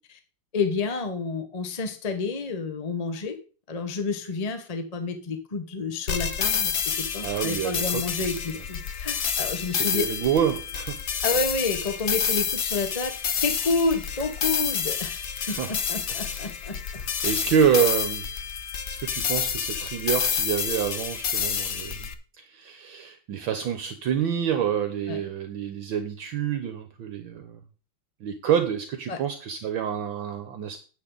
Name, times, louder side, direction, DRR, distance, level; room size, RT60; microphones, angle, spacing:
voice 1, 0.5-3.4 3.7-10.0 11.2-13.1 13.4-16.8 25.1-25.2 29.1-29.2, left 4 dB, 25° left, 1.0 m, -29 dB
sound 1, 6.1-22.1, left 7 dB, 85° left, 0.6 m, -29 dB
voice 2, 7.2-8.1 9.7-11.0 15.5-15.8 16.1-16.4 16.9-18.3 18.9-22.1 22.4-27.6 28.2-30.8, right 8 dB, 65° right, 1.6 m, -27 dB
9.7 x 8.7 x 3.9 m
omnidirectional pair, 2.4 m